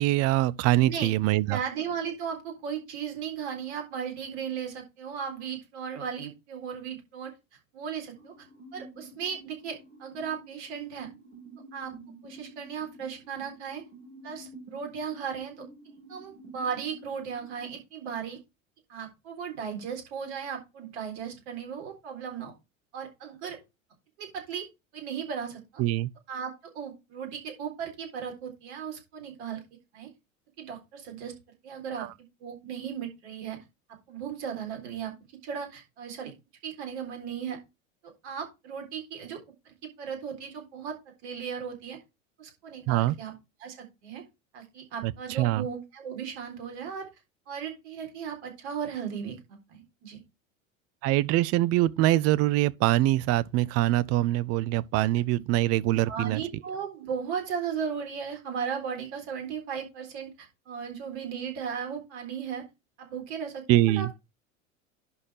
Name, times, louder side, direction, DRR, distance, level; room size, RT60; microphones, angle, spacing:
voice 1, 0.0-1.6 25.8-26.1 32.0-32.1 42.9-43.1 45.0-45.7 51.0-56.4 63.7-64.1, right 15 dB, 40° right, 0.6 m, -24 dB
voice 2, 1.5-7.3 7.7-8.5 8.7-11.1 11.7-11.9 12.2-13.8 14.2-18.4 18.9-22.5 22.9-23.6 24.2-24.7 24.9-25.8 26.3-29.6 29.9-30.1 30.6-31.3 31.6-32.1 32.4-33.6 34.1-35.1 35.4-36.3 36.6-37.6 38.2-39.4 39.7-41.0 41.2-42.0 42.4-44.2 44.5-47.1 47.5-50.2 55.4-55.5 56.1-62.7 63.0-64.2, right 7 dB, 55° right, 3.9 m, -36 dB
sound 1, 8.2-17.7, right 2 dB, 80° right, 4.2 m, -49 dB
11.0 x 4.3 x 4.6 m
figure-of-eight pair, 75°, 40 cm